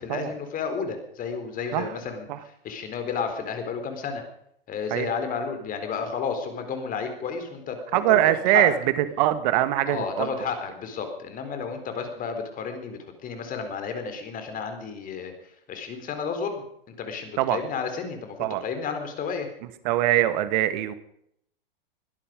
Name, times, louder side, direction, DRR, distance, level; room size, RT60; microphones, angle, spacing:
voice 1, 0.0-4.2 4.7-8.6 9.9-19.5, left 5 dB, 30° left, 7 dB, 4.1 m, -32 dB
voice 2, 7.9-8.7 9.2-10.5 17.4-17.6 18.4-18.6 19.8-20.9, right 14 dB, 50° right, 12 dB, 1.8 m, -22 dB
21.5 x 12.0 x 5.2 m, 0.71 s
hypercardioid pair, 105°, 29 cm